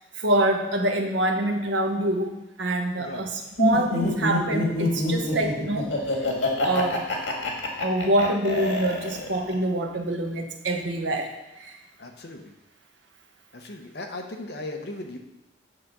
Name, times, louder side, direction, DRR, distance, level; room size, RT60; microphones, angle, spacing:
voice 1, 0.0-5.9 6.6-7.1 7.8-11.3 11.6-11.8, right 1 dB, 80° right, 3 dB, 1.1 m, -25 dB
voice 2, 3.0-3.3 12.0-12.5 13.5-15.2, left 2 dB, 60° left, 3 dB, 1.0 m, -37 dB
Laughter, 3.6-9.5, left 2 dB, 90° left, 1.8 m, -26 dB
8.8 x 3.7 x 6.7 m, 1.0 s
head